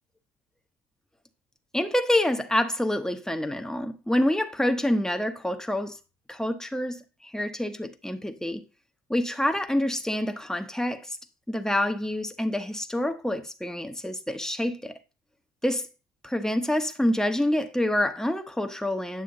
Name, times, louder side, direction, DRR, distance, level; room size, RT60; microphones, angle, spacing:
voice 1, 1.7-6.0 6.3-8.6 9.1-11.2 11.5-14.9 15.6-15.9 16.2-19.2, left 1 dB, 5° left, 1.0 m, -27 dB
9.6 x 6.7 x 3.7 m
cardioid pair, 110°, 17 cm